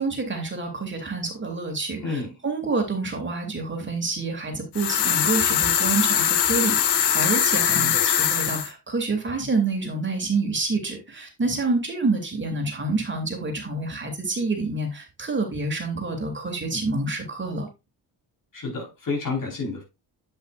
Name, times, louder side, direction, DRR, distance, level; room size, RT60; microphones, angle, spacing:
voice 1, 0.0-17.7, right 3 dB, 30° right, 2.7 m, -27 dB
voice 2, 2.0-2.4 7.5-8.1 18.5-19.8, left 4 dB, 55° left, 4.4 m, -30 dB
sound 1, 4.7-8.7, left 9 dB, 80° left, 1.2 m, -22 dB
8.4 x 7.9 x 2.5 m
cardioid pair, 90°, 40 cm